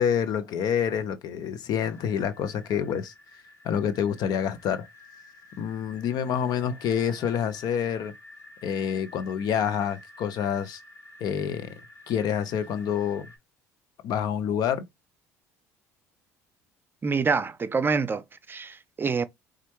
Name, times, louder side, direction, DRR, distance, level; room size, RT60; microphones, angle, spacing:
voice 1, 0.0-3.1 3.6-4.9 5.6-8.1 8.6-10.8 11.2-11.7 12.1-13.3 14.0-14.8, left 8 dB, 60° left, 0.8 m, -27 dB
sound 1, 1.8-13.4, left 2 dB, 35° left, 2.9 m, -51 dB
voice 2, 17.0-19.2, right 5 dB, 30° right, 0.5 m, -26 dB
4.3 x 2.5 x 2.9 m
hypercardioid pair, 70°, 8 cm